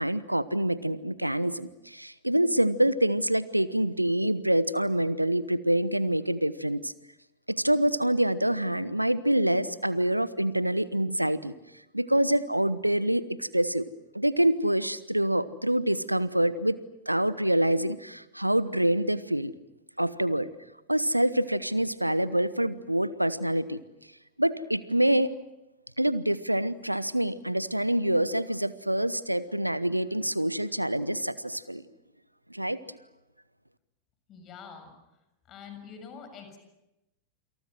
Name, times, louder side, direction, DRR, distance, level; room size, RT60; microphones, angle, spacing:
voice 1, 0.0-6.9 7.5-11.5 11.9-13.9 14.1-16.8 17.1-19.5 20.0-20.5 20.9-23.8 24.4-25.3 26.0-31.8 32.5-33.0, right 1 dB, 90° right, 18 dB, 1.0 m, -26 dB
voice 2, 34.3-34.9 35.5-36.6, left 6 dB, 30° left, 7 dB, 6.8 m, -45 dB
28.0 x 26.5 x 6.3 m, 0.93 s
figure-of-eight pair, 90°, 0 cm